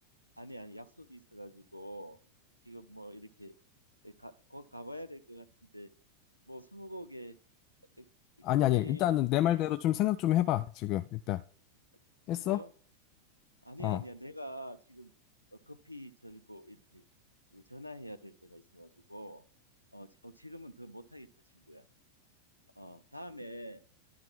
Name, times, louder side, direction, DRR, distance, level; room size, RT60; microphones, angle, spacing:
voice 1, 0.4-2.2 2.6-3.5 4.0-5.5 5.7-5.9 6.5-7.4 8.0-8.1 8.7-9.2 12.3-12.7 13.6-15.1 15.5-17.0 17.5-19.4 19.9-21.3 21.5-21.9 22.8-23.8, equal, 90° left, 9 dB, 0.5 m, -46 dB
voice 2, 8.4-11.4 12.3-12.6 13.8-14.0, left 14 dB, 40° left, 10 dB, 0.3 m, -28 dB
11.0 x 3.8 x 4.5 m, 0.41 s
figure-of-eight pair, 90°, 0 cm